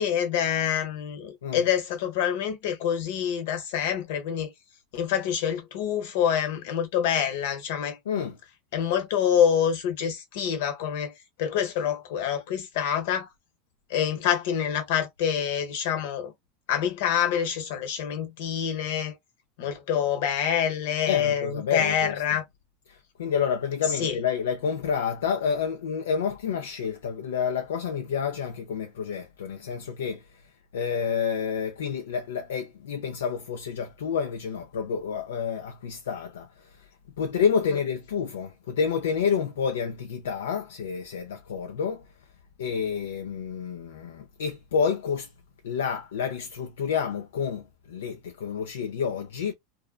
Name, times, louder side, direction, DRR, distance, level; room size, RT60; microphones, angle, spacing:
voice 1, 0.0-4.5 4.9-8.0 8.7-11.1 11.4-13.3 13.9-16.3 16.7-19.2 19.6-22.4 24.0-24.1, left 9 dB, 70° left, 0.9 m, -26 dB
voice 2, 8.1-8.4 21.1-22.4 22.9-30.3 30.7-36.9 37.2-42.0 42.6-45.3 45.6-49.5, left 6 dB, 85° left, 0.4 m, -29 dB
2.5 x 2.1 x 2.3 m
hypercardioid pair, 100°, 0 cm